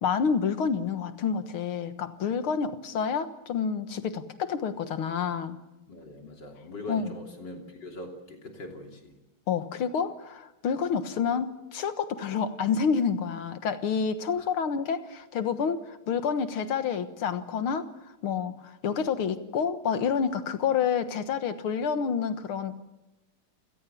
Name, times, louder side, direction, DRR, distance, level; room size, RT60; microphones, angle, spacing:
voice 1, 0.0-5.6 6.9-7.1 9.5-17.9 18.2-22.8, left 6 dB, 85° left, 10 dB, 2.3 m, -28 dB
voice 2, 5.9-9.1 14.4-14.5, left 1 dB, 55° left, 3 dB, 3.6 m, -42 dB
29.0 x 16.5 x 8.6 m, 1.0 s
omnidirectional pair, 2.3 m